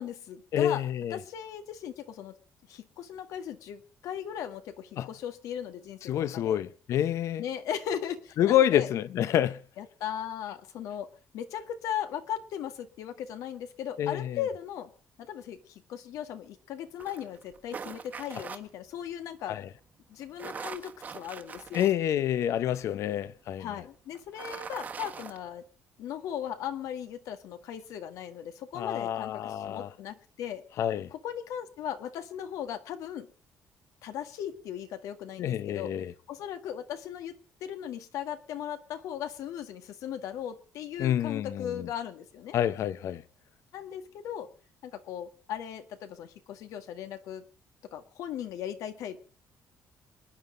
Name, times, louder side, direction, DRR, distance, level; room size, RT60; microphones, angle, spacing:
voice 1, 0.0-0.8 1.1-2.4 2.7-6.6 7.4-8.9 9.8-14.9 15.2-19.6 20.1-21.8 23.1-23.2 23.6-25.6 26.0-30.6 31.1-33.3 34.0-36.0 36.3-42.6 43.7-44.5 44.8-47.4 47.9-49.2, left 9 dB, 85° left, 1.9 m, -37 dB
voice 2, 0.5-1.2 5.0-5.1 6.1-7.4 8.4-9.6 14.0-14.4 19.5-19.7 21.7-23.7 28.7-29.9 30.8-31.1 35.4-36.1 41.0-41.9 42.5-43.2, left 11 dB, 60° left, 0.8 m, -28 dB
sound 1, 17.0-18.6 20.2-21.9 22.4-22.5 24.1-25.4, right 6 dB, 30° right, 1.4 m, -41 dB
27.5 x 9.9 x 5.2 m
cardioid pair, 160°, 6 cm